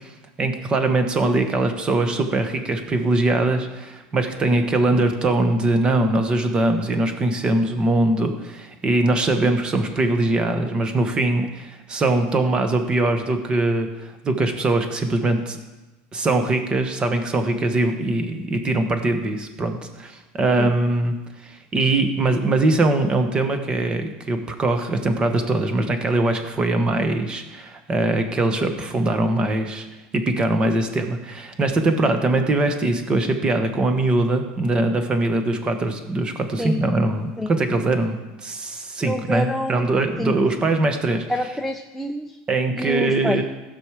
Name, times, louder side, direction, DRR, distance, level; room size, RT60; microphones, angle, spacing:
voice 1, 0.4-15.6 16.1-21.1 21.4-29.9 30.1-41.2 42.5-43.4, right 2 dB, 20° right, 6 dB, 1.2 m, -22 dB
voice 2, 39.0-39.9 40.2-40.3 41.3-42.4 42.8-43.4, left 1 dB, ahead, 4 dB, 0.5 m, -27 dB
15.5 x 6.2 x 4.9 m, 1.1 s
supercardioid pair, 140°, 4 cm